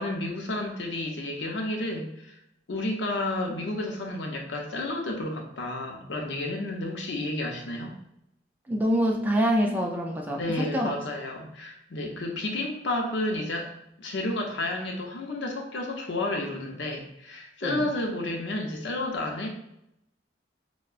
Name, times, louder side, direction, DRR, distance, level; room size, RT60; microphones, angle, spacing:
voice 1, 0.0-2.3 2.7-8.0 10.3-13.7 14.0-19.5, left 1 dB, 80° left, 1 dB, 0.6 m, -31 dB
voice 2, 8.7-10.9 17.6-17.9, equal, 10° right, 0 dB, 0.3 m, -26 dB
4.5 x 2.1 x 2.4 m, 0.79 s
head